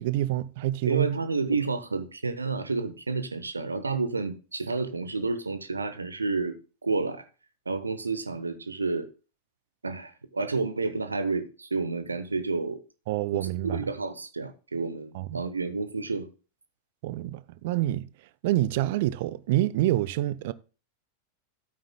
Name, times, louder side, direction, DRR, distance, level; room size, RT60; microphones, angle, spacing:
voice 1, 0.0-1.1 13.1-13.8 15.1-15.4 17.0-18.1 18.4-20.5, right 15 dB, 50° right, 0.5 m, -27 dB
voice 2, 0.9-6.6 6.8-7.2 7.7-9.1 9.8-12.8 13.3-16.3, right 3 dB, 80° right, 0.8 m, -30 dB
12.0 x 8.8 x 2.2 m
figure-of-eight pair, 90°, 0 cm